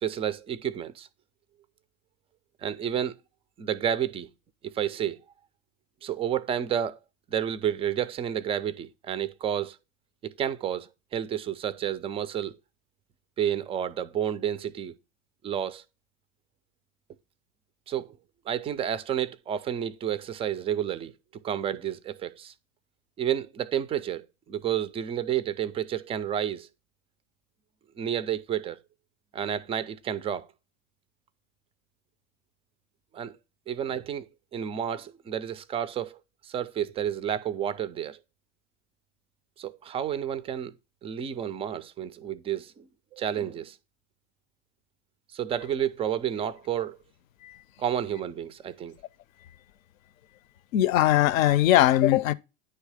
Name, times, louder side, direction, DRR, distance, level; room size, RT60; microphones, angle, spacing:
voice 1, 0.0-1.1 2.6-3.2 3.6-4.3 4.6-5.2 6.0-7.0 7.3-9.8 10.2-12.5 13.4-14.9 15.4-15.8 17.9-18.2 18.5-22.5 23.2-26.7 28.0-28.8 29.3-30.5 33.1-33.4 33.7-34.3 34.5-38.2 39.6-40.7 41.0-43.8 45.3-47.0 47.8-49.0, right 9 dB, 15° right, 0.3 m, -30 dB
voice 2, 50.7-52.3, left 13 dB, 70° left, 0.6 m, -20 dB
9.6 x 3.2 x 4.8 m
hypercardioid pair, 95°, 42 cm